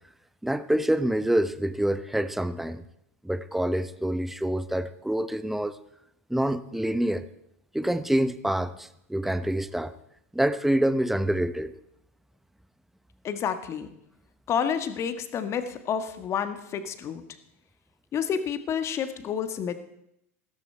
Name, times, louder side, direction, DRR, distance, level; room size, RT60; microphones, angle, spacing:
voice 1, 0.4-2.8 3.2-5.8 6.3-7.2 7.7-9.9 10.3-11.7, right 1 dB, 5° right, 13 dB, 0.8 m, -26 dB
voice 2, 13.2-13.9 14.5-17.2 18.1-19.7, left 7 dB, 35° left, 10 dB, 1.5 m, -29 dB
15.0 x 13.5 x 4.5 m, 0.79 s
hypercardioid pair, 90°, 8 cm